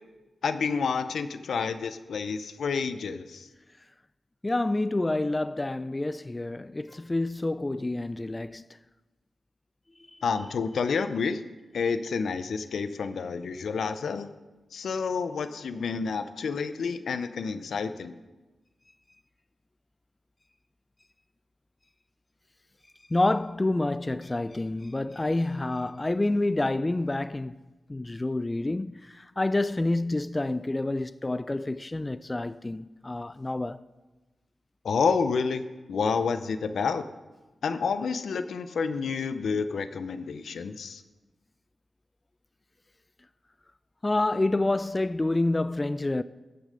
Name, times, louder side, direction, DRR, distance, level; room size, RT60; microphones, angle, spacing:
voice 1, 0.4-3.5 10.2-11.4 11.7-14.3 14.7-18.2 34.8-35.6 35.9-37.0 37.6-41.0, left 5 dB, 80° left, 0.6 m, -29 dB
voice 2, 4.4-8.6 10.1-10.2 23.1-27.6 27.9-33.8 44.0-46.2, left 2 dB, 30° left, 0.4 m, -28 dB
14.5 x 6.9 x 5.1 m
supercardioid pair, 40°, 0 cm